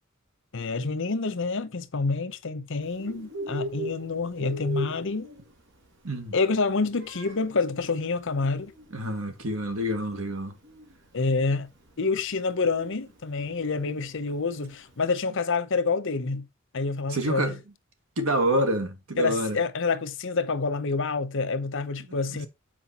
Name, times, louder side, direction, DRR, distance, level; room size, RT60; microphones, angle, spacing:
voice 1, 0.5-5.3 6.3-8.7 11.1-11.7 12.0-16.5 16.7-17.5 19.2-22.5, left 4 dB, 65° left, 0.9 m, -27 dB
Bird, 2.8-15.0, right 1 dB, 60° right, 2.2 m, -41 dB
voice 2, 8.9-10.6 17.1-17.6 18.2-19.6 22.0-22.5, right 1 dB, 80° right, 1.9 m, -27 dB
7.7 x 4.7 x 4.2 m
head